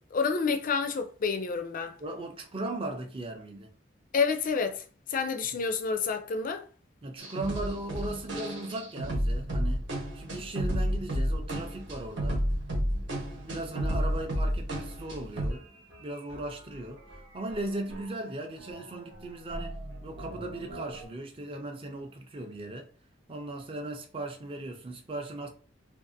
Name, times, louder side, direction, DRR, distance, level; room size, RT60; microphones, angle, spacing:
voice 1, 0.1-2.0 4.1-4.8 5.1-6.6, left 5 dB, 45° left, 0.4 m, -29 dB
voice 2, 2.0-3.7 7.0-9.9 10.1-12.4 12.9-15.7 16.0-22.9 23.3-25.5, right 2 dB, 30° right, 0.5 m, -37 dB
sound 1, 7.2-15.7 15.9-16.0 16.3-18.3 18.6-21.0, equal, 70° right, 1.0 m, -33 dB
2.6 x 2.4 x 2.5 m
head